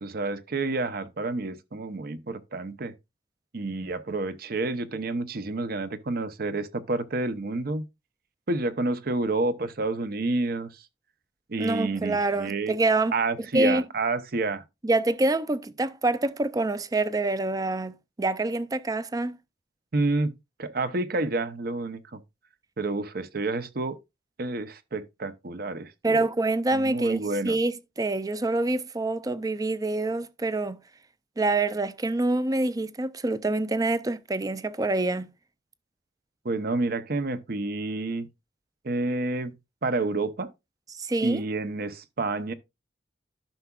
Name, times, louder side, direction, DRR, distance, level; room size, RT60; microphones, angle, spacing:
voice 1, 0.0-2.9 3.5-7.9 8.5-10.8 11.5-12.8 13.1-14.6 19.9-20.3 20.6-22.2 22.8-24.0 24.4-26.3 26.7-27.6 36.4-38.3 38.8-39.6 39.8-40.5 41.2-42.5, right 2 dB, 55° right, 0.8 m, -29 dB
voice 2, 11.6-13.1 13.5-13.8 14.8-19.4 26.0-30.8 31.4-35.3 41.0-41.4, right 2 dB, 20° right, 0.5 m, -26 dB
11.5 x 5.8 x 2.4 m
head